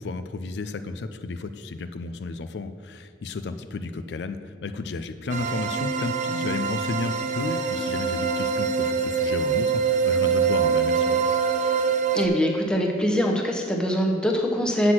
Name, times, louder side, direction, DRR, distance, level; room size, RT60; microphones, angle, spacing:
voice 1, 0.0-11.4, left 3 dB, 80° left, 10 dB, 0.4 m, -33 dB
sound 1, 5.3-12.3, right 6 dB, 45° right, 0.5 m, -25 dB
sound 2, 7.4-12.7, equal, 20° left, 0.4 m, -33 dB
voice 2, 12.1-14.9, equal, 5° left, 0 dB, 0.9 m, -23 dB
7.8 x 5.8 x 6.2 m, 2.2 s
head